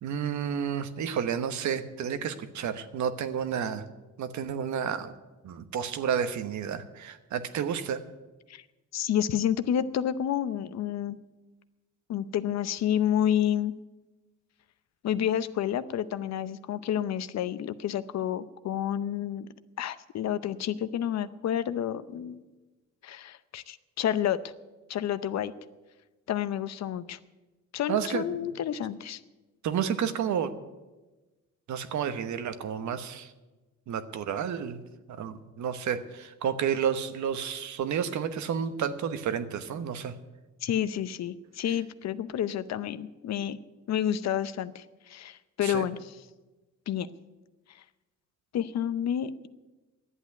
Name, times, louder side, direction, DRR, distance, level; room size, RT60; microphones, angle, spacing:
voice 1, 0.0-3.8 4.2-5.1 5.4-8.0 27.9-28.3 29.6-30.5 31.7-33.3 33.9-34.8 35.1-40.1 45.6-45.8, right 8 dB, 70° right, 10 dB, 1.1 m, -31 dB
voice 2, 8.9-11.2 12.1-13.7 15.0-19.5 19.8-22.4 23.0-24.4 24.9-25.5 26.3-27.2 27.7-29.2 40.6-43.6 43.9-46.1 46.9-47.1 48.5-49.5, left 10 dB, 60° left, 14 dB, 0.7 m, -29 dB
11.0 x 8.2 x 9.3 m, 1.2 s
cardioid pair, 90°, 30 cm